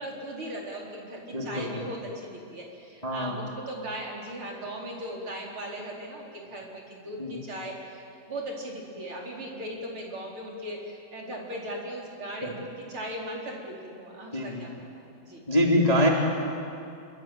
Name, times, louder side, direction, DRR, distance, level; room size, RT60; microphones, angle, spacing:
voice 1, 0.0-15.4, right 1 dB, 30° right, -2 dB, 4.7 m, -38 dB
voice 2, 1.3-1.7 3.0-3.3 7.2-7.4 12.4-12.5 14.3-14.6 15.5-16.1, equal, 10° left, -1 dB, 2.3 m, -24 dB
27.5 x 24.0 x 9.0 m, 2.6 s
omnidirectional pair, 5.1 m